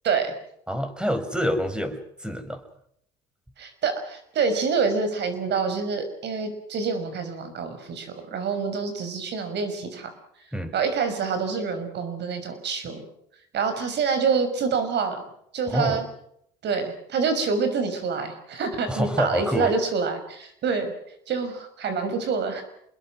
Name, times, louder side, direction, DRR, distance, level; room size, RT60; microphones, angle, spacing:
voice 1, 0.0-0.3 3.6-10.1 10.7-13.0 13.5-15.3 15.5-16.1 16.6-20.9 21.3-22.6, right 5 dB, 60° right, 8 dB, 6.1 m, -26 dB
voice 2, 0.7-2.6 10.5-10.7 15.7-16.0 18.9-19.7, equal, 5° right, 9 dB, 5.0 m, -27 dB
28.0 x 21.5 x 6.3 m, 0.73 s
supercardioid pair, 65°, 20 cm